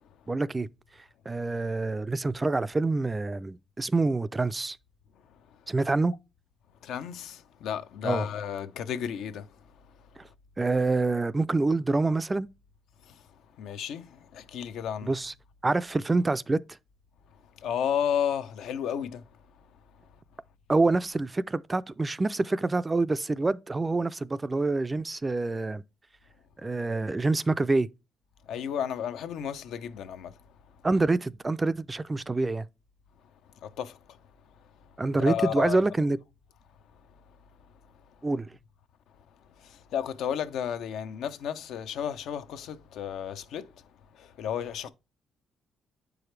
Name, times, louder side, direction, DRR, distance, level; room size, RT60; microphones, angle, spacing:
voice 1, 0.3-0.7 1.3-4.8 5.7-6.1 8.0-8.3 10.6-12.5 15.0-15.3 15.6-16.6 20.7-25.8 26.6-27.9 30.8-32.7 35.0-36.2 38.2-38.5, right 3 dB, 20° right, 0.3 m, -26 dB
voice 2, 6.8-9.6 13.0-13.2 13.6-15.1 17.6-19.2 28.5-30.4 33.6-34.2 35.3-35.8 39.6-43.8 44.1-44.9, left 8 dB, 80° left, 0.6 m, -33 dB
7.9 x 4.8 x 3.2 m
cardioid pair, 90°, 0 cm